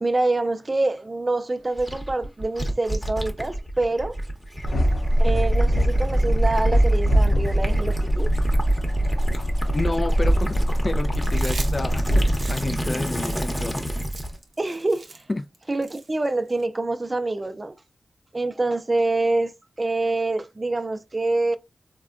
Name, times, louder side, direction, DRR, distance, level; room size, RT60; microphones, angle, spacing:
voice 1, 0.0-4.2 5.2-8.3 14.6-15.2 15.7-17.8 18.3-19.5 19.8-21.6, right 2 dB, 35° right, 0.4 m, -25 dB
Gurgling / Liquid, 1.8-14.4, right 1 dB, 5° left, 0.8 m, -27 dB
sound 1, 4.6-12.4, equal, 80° left, 0.7 m, -22 dB
voice 2, 9.7-13.8 15.3-15.4, left 2 dB, 40° left, 0.4 m, -30 dB
Chewing mastication, 11.2-16.6, right 3 dB, 70° right, 0.7 m, -41 dB
3.5 x 2.2 x 2.4 m
cardioid pair, 55°, 0 cm